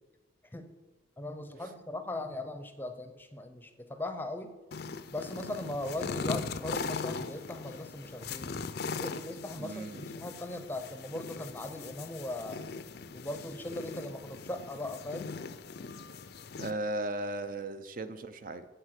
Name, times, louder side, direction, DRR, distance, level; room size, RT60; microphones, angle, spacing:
voice 1, 1.2-4.6 5.1-8.6 9.0-12.6 13.1-15.3, left 1 dB, 10° left, 8 dB, 0.6 m, -39 dB
sound 1, 4.7-16.7, left 4 dB, 55° left, 0.5 m, -40 dB
voice 2, 9.6-10.1 16.6-18.7, right 2 dB, 45° right, 10 dB, 0.5 m, -36 dB
8.1 x 7.7 x 6.4 m, 1.2 s
head